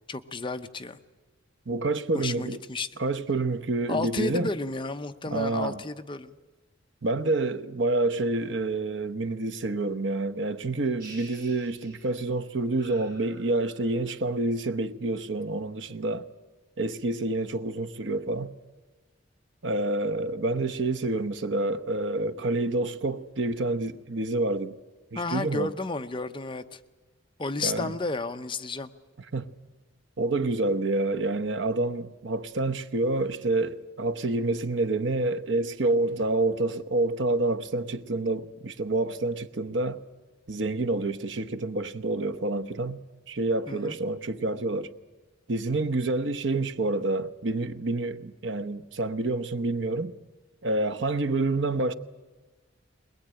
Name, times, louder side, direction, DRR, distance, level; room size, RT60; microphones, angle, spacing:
voice 1, 0.1-1.0 2.1-2.9 3.9-6.3 25.1-26.8 27.4-28.9 43.7-44.0, left 3 dB, 25° left, 0.8 m, -32 dB
voice 2, 1.7-2.6 3.0-4.5 5.3-5.8 7.0-16.3 16.8-18.5 19.6-24.7 25.1-25.7 27.6-27.9 29.3-29.5 30.2-40.0 40.5-43.0 43.3-44.9 45.5-50.1 50.6-51.9, right 2 dB, 70° right, 0.9 m, -28 dB
sound 1, 11.0-12.3 12.8-14.0, right 2 dB, 50° right, 7.5 m, -50 dB
21.5 x 21.0 x 9.0 m
head